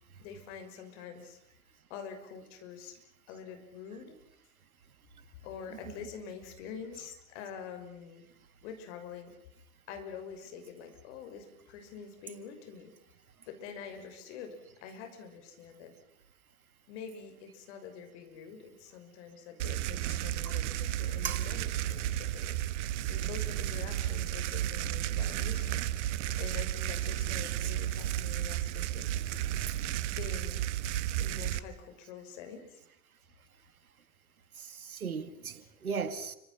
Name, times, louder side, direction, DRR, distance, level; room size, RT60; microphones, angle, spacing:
voice 1, 0.2-1.4 1.9-3.0 3.3-4.2 5.4-8.2 8.6-9.3 9.9-12.9 13.5-15.9 16.9-25.8 26.4-29.3 30.1-30.6 31.2-32.7, left 6 dB, 55° left, 6.2 m, -46 dB
sound 1, 19.6-31.6, right 13 dB, 55° right, 1.4 m, -33 dB
voice 2, 34.6-36.3, right 6 dB, 80° right, 2.2 m, -37 dB
29.5 x 25.5 x 5.8 m
figure-of-eight pair, 95°, 43 cm